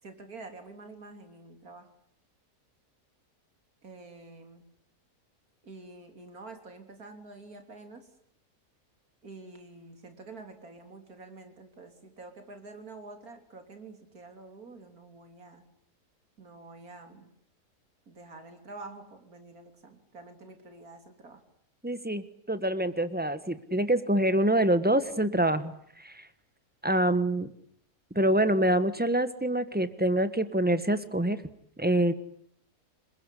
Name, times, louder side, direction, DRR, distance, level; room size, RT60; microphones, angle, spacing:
voice 1, 0.0-1.9 3.8-4.6 5.6-8.1 9.2-15.7 16.4-17.3 18.1-21.4, right 3 dB, 70° right, 6 dB, 3.8 m, -48 dB
voice 2, 21.8-26.3 26.8-27.5 28.1-31.4 31.8-32.1, right 1 dB, 5° right, 12 dB, 1.4 m, -26 dB
27.5 x 21.5 x 10.0 m, 0.67 s
omnidirectional pair, 1.6 m